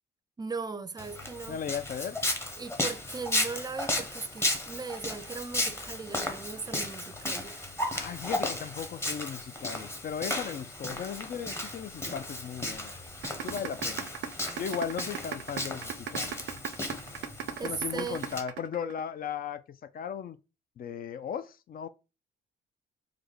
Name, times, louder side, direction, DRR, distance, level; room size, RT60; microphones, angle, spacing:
voice 1, 0.4-1.6 2.6-7.6 17.6-18.2, right 4 dB, 20° right, 0.4 m, -38 dB
Walk footsteps, 1.0-18.4, left 1 dB, 15° left, 0.8 m, -35 dB
voice 2, 1.5-2.2 7.9-12.9 13.4-14.1 14.6-16.4 17.6-19.6 19.9-20.4 20.8-21.9, left 8 dB, 50° left, 0.4 m, -36 dB
sound 1, 13.2-19.2, right 9 dB, 75° right, 0.5 m, -35 dB
3.2 x 2.2 x 3.8 m
cardioid pair, 90°, 20 cm